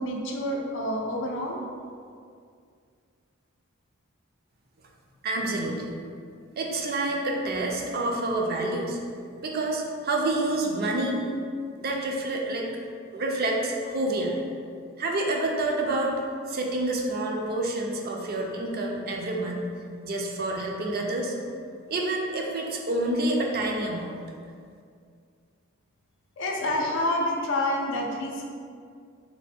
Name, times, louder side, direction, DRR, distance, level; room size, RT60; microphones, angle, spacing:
voice 1, 0.0-1.6 26.4-28.4, left 1 dB, 60° left, 0 dB, 0.5 m, -28 dB
voice 2, 5.2-6.0 6.6-9.0 9.4-11.2 11.8-12.7 13.1-14.4 15.0-16.1 16.5-19.6 20.0-21.3 21.9-24.2, right 2 dB, 45° right, 0 dB, 0.4 m, -28 dB
3.3 x 2.2 x 4.2 m, 2.2 s
head